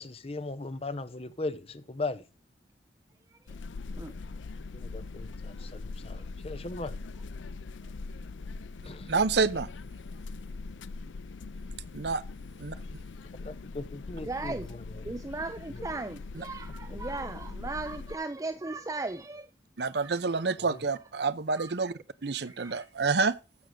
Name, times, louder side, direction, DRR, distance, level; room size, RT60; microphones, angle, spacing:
voice 1, 0.0-2.2 4.7-7.0 8.8-9.1 13.4-15.1 20.6-20.8, left 2 dB, 30° left, 0.7 m, -38 dB
sound 1, 3.5-18.2, left 3 dB, 85° left, 0.5 m, -41 dB
voice 2, 9.1-9.7 11.9-12.2 12.6-12.7 19.8-21.9 22.2-23.3, right 4 dB, 60° right, 0.6 m, -28 dB
voice 3, 14.2-14.7 15.0-19.5 19.9-20.4 21.1-21.7 22.4-22.9, right 3 dB, 15° right, 0.4 m, -38 dB
14.5 x 6.3 x 3.7 m
head